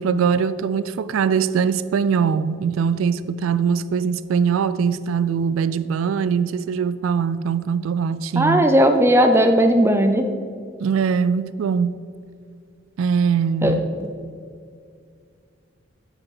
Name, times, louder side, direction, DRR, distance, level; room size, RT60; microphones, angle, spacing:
voice 1, 0.0-8.7 10.8-12.0 13.0-13.8, right 6 dB, 80° right, 0.3 m, -22 dB
voice 2, 8.4-10.3 13.6-13.7 14.0-14.1, equal, 10° right, 0.5 m, -16 dB
8.7 x 6.1 x 4.8 m
head